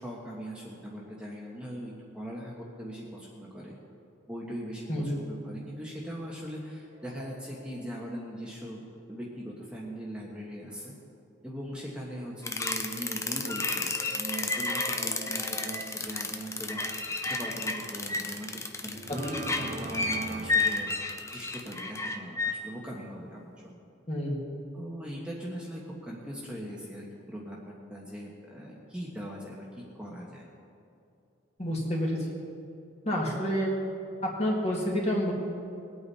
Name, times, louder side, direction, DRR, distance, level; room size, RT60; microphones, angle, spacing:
voice 1, 0.0-3.8 4.3-10.9 11.4-20.9 21.2-23.8 24.7-29.7 29.9-30.5, equal, 5° right, -4 dB, 1.3 m, -40 dB
sound 1, 6.9-11.0 11.3-15.9, right 1 dB, 90° right, 2.8 m, -48 dB
sound 2, 12.4-22.5, left 3 dB, 15° left, 0.6 m, -31 dB
sound 3, 18.1-18.2 18.9-21.7, right 3 dB, 35° right, 0.7 m, -41 dB
voice 2, 24.1-24.4 31.6-32.3 33.1-33.7 34.2-35.3, equal, 30° left, -2 dB, 2.1 m, -28 dB
20.5 x 8.7 x 4.2 m, 2.6 s
head